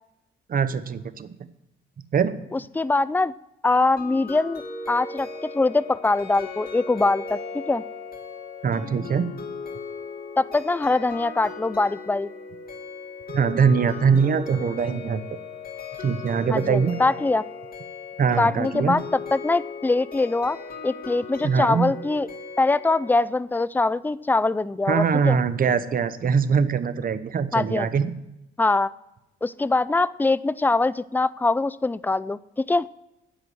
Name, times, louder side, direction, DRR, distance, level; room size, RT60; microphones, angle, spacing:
voice 1, 0.5-1.3 2.1-2.3 8.6-9.3 13.3-15.2 16.0-17.0 18.2-18.9 21.4-21.8 24.9-28.1, right 6 dB, 45° right, 13 dB, 0.9 m, -22 dB
voice 2, 2.5-3.3 3.6-7.8 10.4-12.3 16.5-17.4 18.4-20.6 20.8-22.3 22.6-25.4 27.5-27.9 28.6-28.9 29.4-32.9, left 3 dB, 10° left, 18 dB, 0.4 m, -23 dB
sound 1, 4.0-23.2, left 4 dB, 50° left, 2.6 m, -37 dB
9.9 x 8.3 x 7.8 m, 0.89 s
cardioid pair, 90°, 20 cm